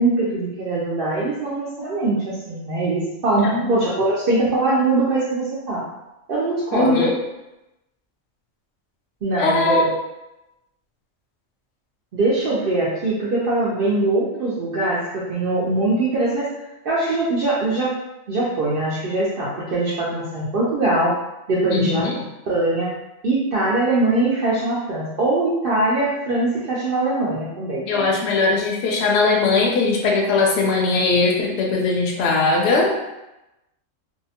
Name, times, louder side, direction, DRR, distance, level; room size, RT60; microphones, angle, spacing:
voice 1, 0.0-5.8 6.3-7.1 9.2-9.9 12.1-16.5 16.8-17.9 18.3-21.2 21.5-22.0 22.5-22.9 23.2-28.1, right 2 dB, 65° right, -7 dB, 0.5 m, -22 dB
voice 2, 3.4-3.8 6.7-7.1 9.4-9.8 21.7-22.2 27.9-33.0, left 3 dB, 60° left, 0 dB, 0.7 m, -19 dB
2.7 x 2.1 x 2.7 m, 0.95 s
omnidirectional pair, 1.4 m